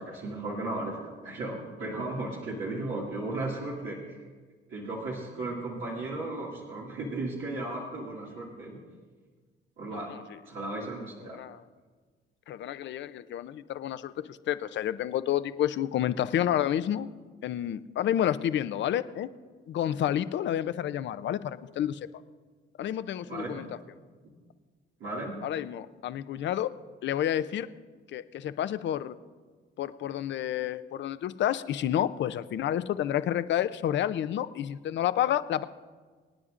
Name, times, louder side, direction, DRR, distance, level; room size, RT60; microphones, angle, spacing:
voice 1, 0.0-4.2 4.7-8.8 9.8-10.1 10.5-11.4 23.3-23.6 25.0-25.5, right 2 dB, 80° right, -5 dB, 2.2 m, -35 dB
voice 2, 12.5-17.1 17.4-19.3 19.7-22.0 22.8-23.7 25.4-26.7 27.0-27.7 28.1-29.1 29.8-35.6, left 11 dB, 65° left, 12 dB, 0.5 m, -29 dB
24.5 x 9.5 x 2.5 m, 1.5 s
cardioid pair, 90°, 20 cm